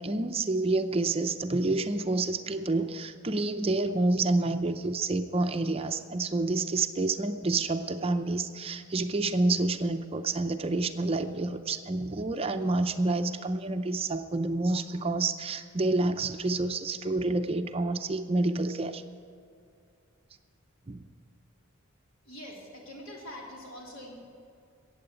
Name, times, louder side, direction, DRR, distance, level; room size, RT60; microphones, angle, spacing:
voice 1, 0.0-19.0 20.9-21.0, right 2 dB, 25° right, 8 dB, 0.5 m, -28 dB
voice 2, 22.2-24.2, equal, 75° left, -2 dB, 3.6 m, -44 dB
14.5 x 8.7 x 8.9 m, 2.3 s
head